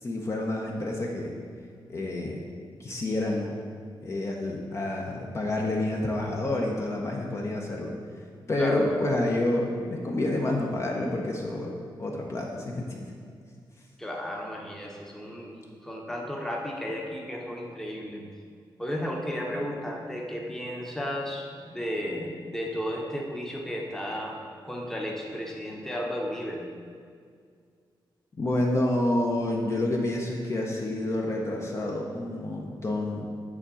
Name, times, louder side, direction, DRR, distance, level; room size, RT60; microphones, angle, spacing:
voice 1, 0.0-1.3 1.9-2.4 2.8-3.6 4.0-7.9 8.5-11.7 12.0-13.1 28.4-33.3, left 1 dB, 35° left, -1 dB, 0.8 m, -28 dB
voice 2, 8.6-9.0 14.0-18.2 18.8-24.4 24.6-26.7, equal, 5° left, -1 dB, 0.9 m, -34 dB
8.6 x 3.7 x 6.9 m, 2.1 s
wide cardioid pair, 160°, 9 cm